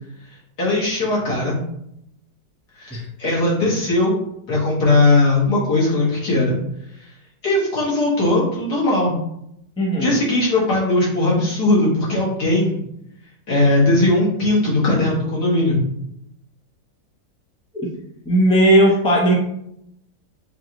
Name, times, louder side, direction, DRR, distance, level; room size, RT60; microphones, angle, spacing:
voice 1, 0.6-1.6 2.8-4.1 4.5-6.6 7.0-7.1 7.4-9.1 10.0-12.8 13.5-15.8, left 2 dB, 65° left, -6 dB, 2.2 m, -19 dB
voice 2, 9.8-10.2 17.7-17.9 18.2-19.3, right 1 dB, 10° left, -3 dB, 0.3 m, -16 dB
6.8 x 2.6 x 2.9 m, 0.76 s
omnidirectional pair, 1.8 m